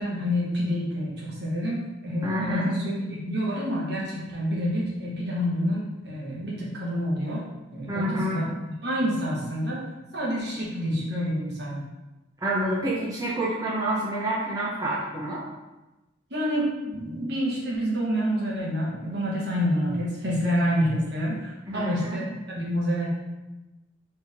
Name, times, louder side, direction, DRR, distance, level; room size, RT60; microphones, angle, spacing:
voice 1, 0.0-8.4 8.8-9.8 10.1-11.8 16.3-23.1, equal, 55° right, -4 dB, 1.2 m, -28 dB
voice 2, 2.2-2.7 7.9-8.4 12.4-15.4 21.7-22.2, right 1 dB, 15° right, -8 dB, 0.7 m, -28 dB
4.6 x 3.4 x 3.5 m, 1.1 s
head